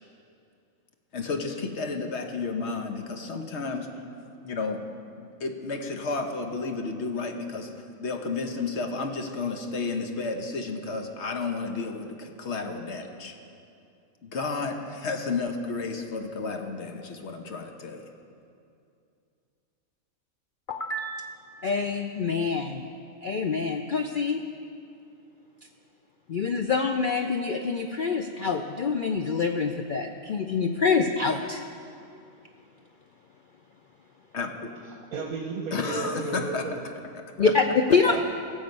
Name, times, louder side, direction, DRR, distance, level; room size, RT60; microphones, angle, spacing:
voice 1, 1.1-3.9 4.4-4.8 5.2-13.4 14.2-18.1 34.3-34.7 35.7-36.6 37.4-37.5, left 4 dB, 55° left, 4 dB, 1.1 m, -32 dB
voice 2, 20.7-22.8 23.2-24.4 26.3-31.6 37.4-37.6 37.9-38.1, left 5 dB, 75° left, 5 dB, 0.4 m, -26 dB
voice 3, 34.9-36.8 38.1-38.2, right 4 dB, 75° right, 1 dB, 1.3 m, -33 dB
17.5 x 7.2 x 5.3 m, 2.5 s
omnidirectional pair, 1.5 m